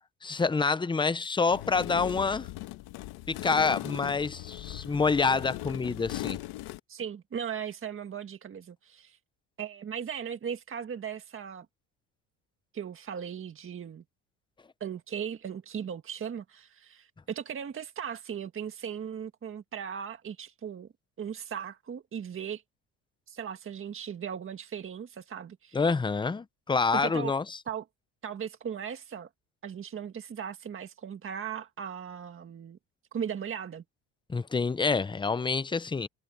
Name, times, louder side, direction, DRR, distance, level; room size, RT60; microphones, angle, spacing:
voice 1, 0.2-2.5 3.3-6.4 25.7-27.6 34.3-36.1, left 4 dB, 10° left, 0.7 m, -27 dB
sound 1, 1.5-6.8, left 17 dB, 80° left, 1.5 m, -39 dB
voice 2, 6.9-9.2 9.6-11.7 12.7-14.0 14.8-20.9 21.2-22.6 23.3-25.8 26.9-27.3 27.7-27.8 28.2-29.3 29.6-32.8 33.1-33.8, right 8 dB, 35° right, 1.7 m, -37 dB
cardioid pair, 115°, 38 cm